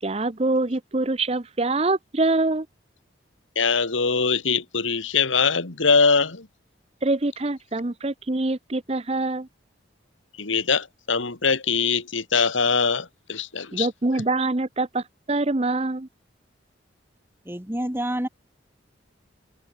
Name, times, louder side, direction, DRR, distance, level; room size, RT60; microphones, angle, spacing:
voice 1, 0.0-2.7 7.0-9.5 13.7-16.1, right 2 dB, 30° right, 0.8 m, -25 dB
voice 2, 3.6-6.5 10.4-13.9, left 5 dB, 85° left, 2.3 m, -22 dB
voice 3, 17.5-18.3, right 1 dB, 10° right, 2.1 m, -28 dB
head